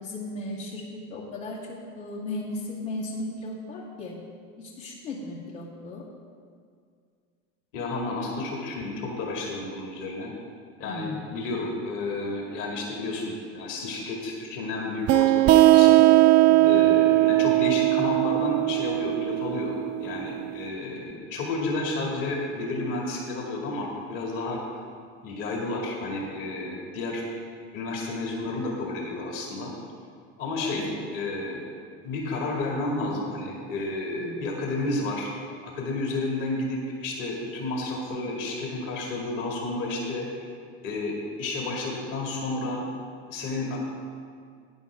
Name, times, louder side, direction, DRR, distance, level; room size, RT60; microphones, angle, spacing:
voice 1, 0.0-4.1 4.6-6.0 10.8-11.2 16.5-16.7 30.6-30.9 34.1-34.4, left 2 dB, 85° left, -7 dB, 2.3 m, -36 dB
voice 2, 7.7-10.3 10.8-16.0 16.6-24.6 25.2-27.3 27.7-29.7 30.4-31.6 32.0-35.3 35.6-40.3 40.8-42.8 43.3-43.8, left 2 dB, 65° left, -2 dB, 2.4 m, -31 dB
sound 1, 15.1-20.4, right 17 dB, 45° right, 0.4 m, -19 dB
12.5 x 9.7 x 3.6 m, 2.1 s
supercardioid pair, 90°, 34 cm